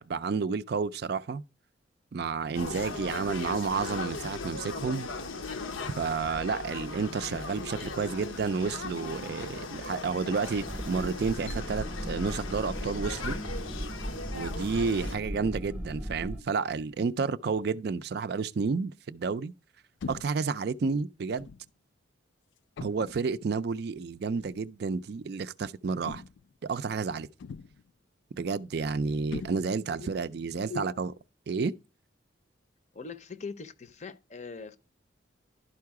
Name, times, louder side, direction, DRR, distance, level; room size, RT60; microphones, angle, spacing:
voice 1, 0.0-1.4 2.1-5.1 5.9-13.4 14.3-19.5 20.1-21.5 22.8-26.2 26.6-27.3 28.4-31.1 31.5-31.7, right 5 dB, 55° right, 0.4 m, -31 dB
sound 1, 2.5-15.2, left 3 dB, 90° left, 0.8 m, -38 dB
sound 2, 10.6-16.4, equal, 10° right, 0.7 m, -37 dB
sound 3, 20.0-20.5 21.4-21.7 22.8-23.3 24.4-24.6 26.1-26.6 27.4-27.9 29.3-30.0, left 5 dB, 70° left, 0.3 m, -41 dB
voice 2, 32.9-34.8, left 5 dB, 35° left, 0.6 m, -41 dB
11.5 x 4.7 x 4.7 m
head